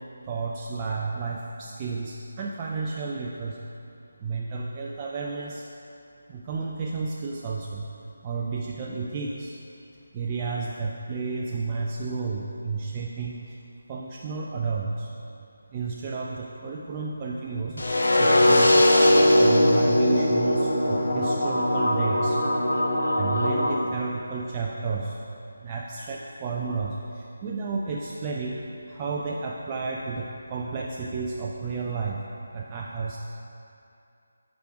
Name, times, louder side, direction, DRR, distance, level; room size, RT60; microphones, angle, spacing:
voice 1, 0.2-3.6 4.2-5.6 6.3-7.9 8.2-9.5 10.1-13.6 13.9-15.1 15.7-22.4 23.2-25.2 25.6-32.2 32.5-33.2, right 4 dB, 20° right, -3 dB, 0.3 m, -32 dB
sound 1, 17.8-23.8, left 1 dB, 65° left, 0.6 m, -20 dB
4.9 x 4.8 x 4.7 m, 2.6 s
figure-of-eight pair, 155°, 0 cm